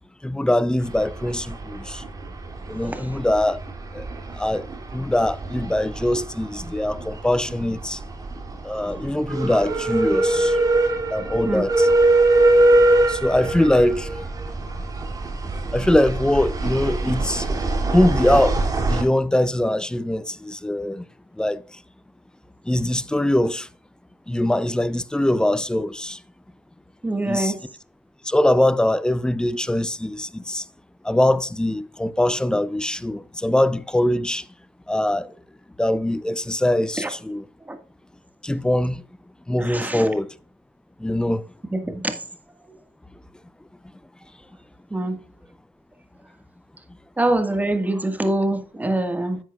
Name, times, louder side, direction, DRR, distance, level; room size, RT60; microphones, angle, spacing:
voice 1, 0.2-2.0 2.7-3.6 3.9-4.0 4.3-4.7 4.9-8.0 8.6-10.6 11.1-11.9 13.1-14.1 15.7-17.5 17.9-21.0 21.4-21.6 22.7-23.7 24.3-26.2 27.2-27.5 28.2-30.6 31.0-34.4 34.9-35.3 35.8-37.4 38.4-39.0 39.5-40.3 41.0-41.4, left 1 dB, 5° left, 0.7 m, -22 dB
sound 1, 0.8-19.0, right 2 dB, 35° right, 2.9 m, -23 dB
voice 2, 27.0-27.6 37.0-37.1 37.7-37.8 39.6-40.1 41.8-42.0 44.9-45.2 47.2-49.4, right 1 dB, 15° right, 1.8 m, -24 dB
10.5 x 8.0 x 2.4 m
cardioid pair, 80°, 11 cm